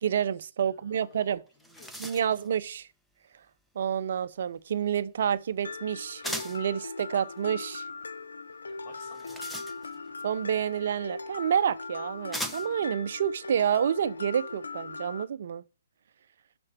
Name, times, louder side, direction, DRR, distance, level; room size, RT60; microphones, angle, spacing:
voice 1, 0.0-1.4 2.0-2.9 3.8-7.8 10.2-15.6, right 8 dB, 60° right, 0.7 m, -29 dB
voice 2, 0.6-2.5 8.6-9.8, left 3 dB, 35° left, 3.6 m, -55 dB
sound 1, 1.1-1.2 1.5-2.5 6.2-6.7 8.9-10.1 11.2-11.3 12.3-12.9, equal, ahead, 0.8 m, -38 dB
Mallet percussion, 5.6-15.2, left 4 dB, 85° left, 0.9 m, -40 dB
6.5 x 6.1 x 7.3 m
hypercardioid pair, 135°, 0 cm